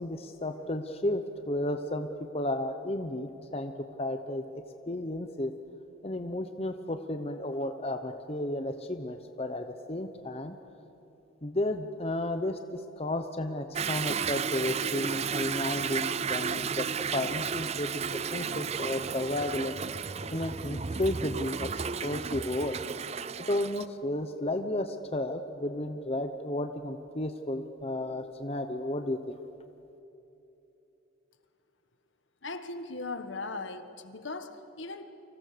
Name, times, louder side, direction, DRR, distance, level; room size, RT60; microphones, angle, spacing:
voice 1, 0.0-3.7 4.0-4.4 4.9-5.5 6.0-10.6 11.4-19.8 20.3-22.8 23.4-29.4, left 1 dB, 30° left, 7 dB, 0.9 m, -33 dB
Toilet flush / Drip / Trickle dribble, 13.8-23.9, right 6 dB, 30° right, 0.5 m, -33 dB
voice 2, 32.4-35.0, left 3 dB, 65° left, 9 dB, 1.6 m, -38 dB
30.0 x 25.0 x 6.8 m, 3.0 s
head